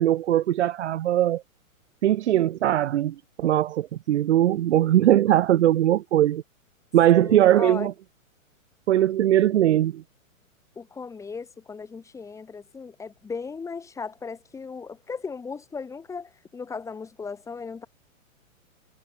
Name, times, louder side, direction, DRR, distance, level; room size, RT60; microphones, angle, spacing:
voice 1, 0.0-1.4 2.0-6.4 6.9-7.9 8.9-10.0, right 12 dB, 55° right, 1.0 m, -20 dB
voice 2, 7.2-7.9 10.8-17.9, left 5 dB, 5° left, 2.8 m, -36 dB
hypercardioid pair, 160°, 42 cm